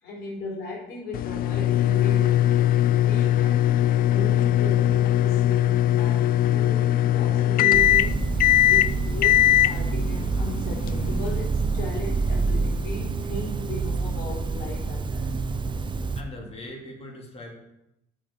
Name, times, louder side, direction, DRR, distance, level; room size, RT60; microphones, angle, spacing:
voice 1, 0.0-2.6 2.9-15.3, left 2 dB, 80° left, -3 dB, 4.0 m, -36 dB
sound 1, 1.1-11.5, left 13 dB, 60° left, 0.4 m, -21 dB
sound 2, 7.7-16.2, right 3 dB, 30° right, 0.7 m, -27 dB
voice 2, 16.1-17.5, left 1 dB, 35° left, 1 dB, 2.7 m, -40 dB
7.8 x 6.2 x 7.0 m, 0.86 s
cardioid pair, 110°, 17 cm